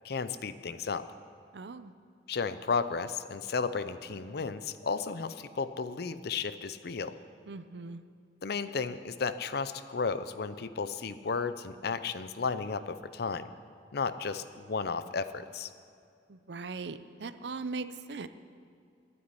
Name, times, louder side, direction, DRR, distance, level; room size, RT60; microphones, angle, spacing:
voice 1, 0.0-1.1 2.3-7.1 8.4-13.5 13.9-15.7, left 5 dB, 65° left, 13 dB, 0.6 m, -33 dB
voice 2, 1.5-1.9 7.5-8.0 16.3-18.3, right 4 dB, 70° right, 12 dB, 0.6 m, -39 dB
12.0 x 9.5 x 9.8 m, 2.3 s
head